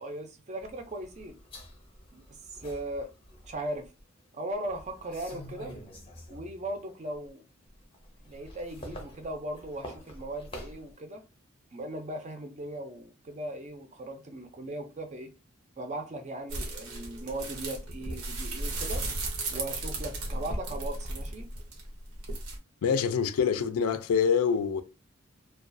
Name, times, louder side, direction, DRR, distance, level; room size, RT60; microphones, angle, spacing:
voice 1, 0.0-1.4 2.1-2.2 2.5-3.1 3.4-3.8 4.3-5.7 6.3-7.4 8.2-11.2 11.7-15.3 15.8-19.0 19.5-21.5, right 1 dB, 35° right, 0.4 m, -38 dB
sound 1, 0.6-4.0 4.5-6.8 7.1-11.0, equal, 25° left, 0.5 m, -47 dB
sound 2, 16.5-22.6, right 2 dB, 90° right, 0.7 m, -35 dB
voice 2, 22.8-24.8, left 6 dB, 85° left, 0.3 m, -25 dB
2.3 x 2.3 x 2.5 m
head